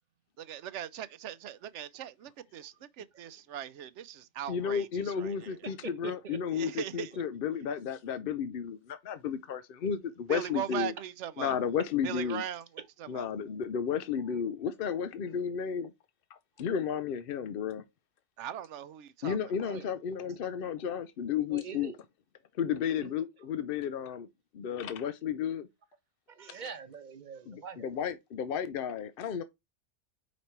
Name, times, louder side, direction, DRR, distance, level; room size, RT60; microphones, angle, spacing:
voice 1, 0.4-5.6 6.6-7.1 10.3-11.6 12.0-12.7 13.1-13.3 18.4-19.4 19.6-19.8, right 11 dB, 85° right, 0.9 m, -39 dB
voice 2, 4.5-10.9 11.4-12.4 13.1-15.9 16.6-17.8 19.2-21.9 22.6-24.3 24.5-25.7 27.5-29.4, left 7 dB, 60° left, 0.7 m, -33 dB
voice 3, 5.6-6.6 7.1-7.2 10.7-10.8 12.8-12.9 19.7-19.9 21.5-22.0 23.0-23.2 26.3-28.0, right 6 dB, 45° right, 0.9 m, -44 dB
5.2 x 4.2 x 4.5 m
omnidirectional pair, 1.2 m